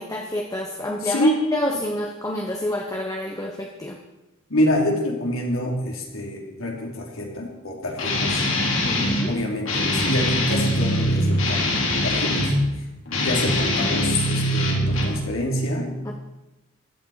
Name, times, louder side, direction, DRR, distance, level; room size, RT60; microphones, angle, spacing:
voice 1, 0.0-4.0 8.8-9.3 16.0-16.1, left 1 dB, 15° left, 1 dB, 1.2 m, -28 dB
voice 2, 1.0-1.4 4.5-8.5 9.3-11.8 12.0-12.5 13.2-16.0, equal, 85° left, 0 dB, 3.4 m, -26 dB
Guitar, 8.0-9.3 9.7-12.6 13.1-15.2, left 1 dB, 70° left, 3.5 m, -22 dB
15.5 x 11.5 x 5.0 m, 1.0 s
head